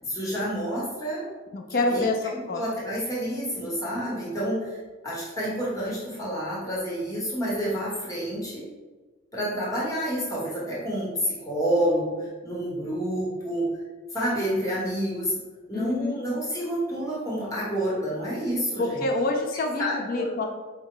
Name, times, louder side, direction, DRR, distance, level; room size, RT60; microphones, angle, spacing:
voice 1, 0.0-1.3 1.7-2.0 2.5-4.8 5.0-8.6 9.3-13.7 14.1-15.3 15.7-19.0 19.8-20.3, equal, 15° left, -6 dB, 0.9 m, -29 dB
voice 2, 1.5-2.2 2.5-2.6 15.7-16.2 18.8-20.4, left 2 dB, 45° left, 3 dB, 0.3 m, -27 dB
4.7 x 2.1 x 3.6 m, 1.3 s
head